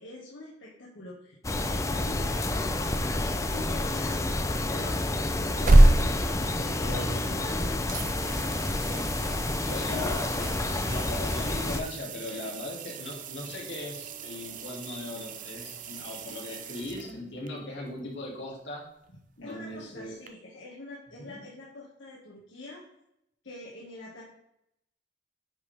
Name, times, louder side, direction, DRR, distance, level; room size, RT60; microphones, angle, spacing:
voice 1, 0.0-5.0 5.4-8.9 9.8-10.2 12.3-12.5 16.9-17.2 19.4-22.8 23.4-24.2, left 2 dB, 80° left, -5 dB, 1.8 m, -44 dB
sound 1, 1.4-11.8, left 2 dB, 15° left, 0.5 m, -29 dB
sound 2, 5.4-7.5 7.9-17.5 20.3-20.4, right 1 dB, 40° right, 0.6 m, -28 dB
voice 2, 9.6-18.8 19.4-20.2 21.2-21.4, left 2 dB, 65° left, -3 dB, 2.7 m, -39 dB
9.5 x 5.4 x 3.4 m, 0.79 s
head